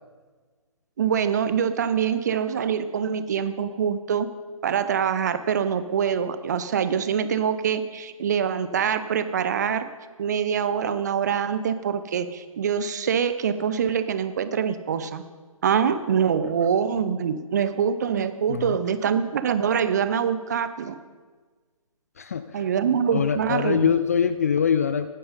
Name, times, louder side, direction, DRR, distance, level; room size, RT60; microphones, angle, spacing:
voice 1, 1.0-4.3 4.6-9.9 10.2-15.2 15.6-21.0 22.5-23.9, right 7 dB, 30° right, 12 dB, 0.7 m, -24 dB
voice 2, 22.2-22.6 23.1-25.1, left 7 dB, 25° left, 12 dB, 0.4 m, -23 dB
18.5 x 10.0 x 5.4 m, 1.4 s
figure-of-eight pair, 140°, 18 cm